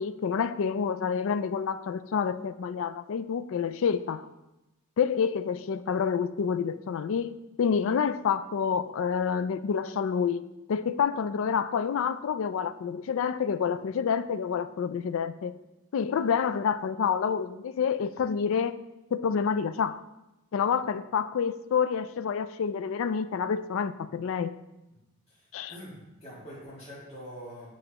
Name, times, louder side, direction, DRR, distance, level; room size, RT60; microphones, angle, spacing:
voice 1, 0.0-4.3 5.0-10.4 10.7-15.5 15.9-18.8 19.1-20.0 20.5-24.6 25.5-25.7, left 6 dB, 60° left, 13 dB, 0.3 m, -28 dB
voice 2, 25.3-27.7, equal, 30° left, -9 dB, 1.9 m, -45 dB
8.7 x 6.2 x 2.9 m, 0.97 s
head